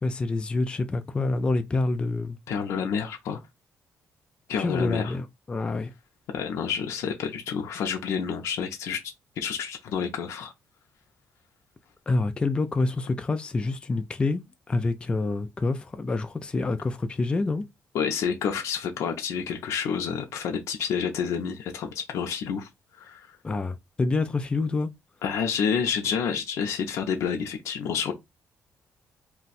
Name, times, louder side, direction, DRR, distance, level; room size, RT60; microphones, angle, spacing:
voice 1, 0.0-2.4 4.6-5.9 12.1-17.6 23.4-24.9, left 3 dB, 20° left, 0.3 m, -27 dB
voice 2, 2.5-3.4 4.5-5.2 6.3-9.0 9.4-10.5 17.9-22.7 23.0-23.3 25.2-28.1, left 7 dB, 80° left, 0.5 m, -29 dB
2.5 x 2.2 x 3.9 m
cardioid pair, 130°, 5 cm